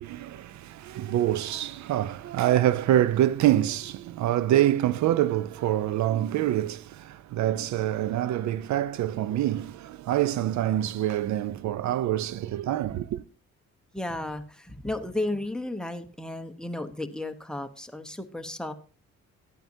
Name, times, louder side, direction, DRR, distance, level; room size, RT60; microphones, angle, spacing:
voice 1, 0.0-13.2, right 12 dB, 70° right, 0.5 m, -26 dB
voice 2, 13.9-18.7, left 1 dB, ahead, 0.9 m, -33 dB
13.0 x 9.1 x 2.7 m
cardioid pair, 90°, 30 cm